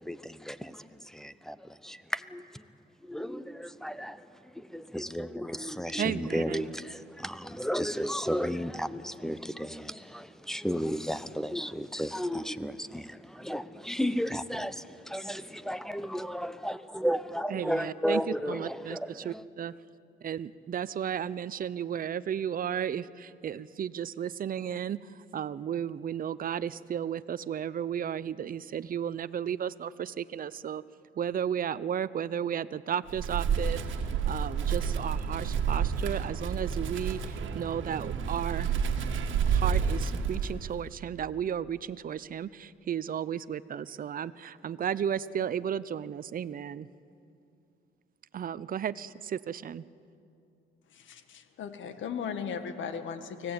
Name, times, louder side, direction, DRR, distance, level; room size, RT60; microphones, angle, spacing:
voice 1, 0.0-2.7 3.0-19.4, equal, ahead, 0.9 m, -34 dB
voice 2, 6.0-6.7 17.5-18.2 18.5-19.7 20.2-30.8 31.2-33.8 34.3-38.8 39.5-46.9 48.3-49.8, right 9 dB, 45° right, 0.7 m, -34 dB
Wind, 33.1-40.8, right 6 dB, 75° right, 1.7 m, -30 dB
voice 3, 50.9-53.5, left 7 dB, 75° left, 1.8 m, -37 dB
24.5 x 17.0 x 8.7 m
cardioid pair, 90°, 20 cm